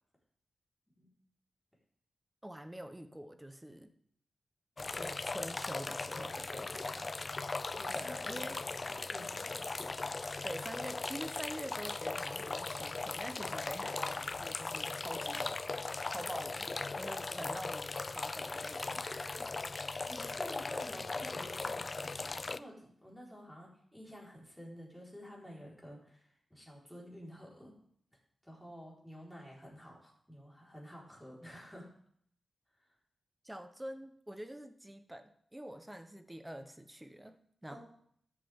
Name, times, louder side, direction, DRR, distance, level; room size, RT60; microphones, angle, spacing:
voice 1, 2.4-3.9 4.9-7.2 7.9-8.6 10.4-15.6 16.1-16.7 17.0-19.5 20.7-20.9 33.4-37.8, right 1 dB, 10° right, 9 dB, 1.1 m, -46 dB
sound 1, 4.8-22.6, left 3 dB, 40° left, 0.4 m, -38 dB
voice 2, 7.5-8.6 8.9-9.9 16.0-16.1 20.1-27.8 28.4-31.9 32.7-33.0 37.7-37.8, equal, 5° left, -4 dB, 4.5 m, -51 dB
13.5 x 7.4 x 3.7 m, 0.65 s
cardioid pair, 70°, 0 cm